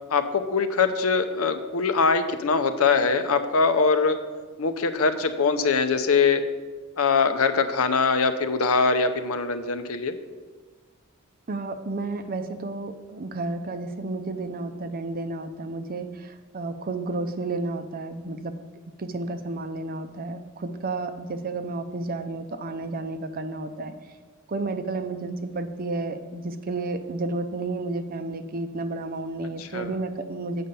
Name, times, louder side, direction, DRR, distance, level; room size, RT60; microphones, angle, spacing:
voice 1, 0.1-4.2 4.6-6.4 7.0-10.1 29.7-29.9, left 4 dB, 90° left, 9 dB, 0.7 m, -22 dB
voice 2, 11.5-18.5 19.0-23.9 24.5-30.7, right 2 dB, 45° right, 9 dB, 0.6 m, -31 dB
7.7 x 5.5 x 6.8 m, 1.4 s
head